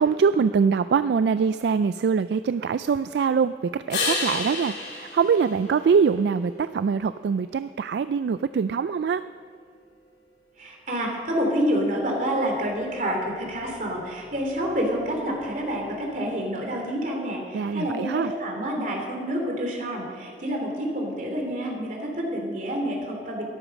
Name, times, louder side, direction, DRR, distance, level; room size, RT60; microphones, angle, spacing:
voice 1, 0.0-9.2 17.5-18.3, right 6 dB, 65° right, 13 dB, 0.3 m, -23 dB
sound 1, 3.9-6.5 12.2-16.2, left 3 dB, 65° left, 3.3 m, -34 dB
voice 2, 10.6-23.4, equal, 45° right, 0 dB, 3.0 m, -28 dB
13.0 x 11.0 x 6.4 m, 2.3 s
head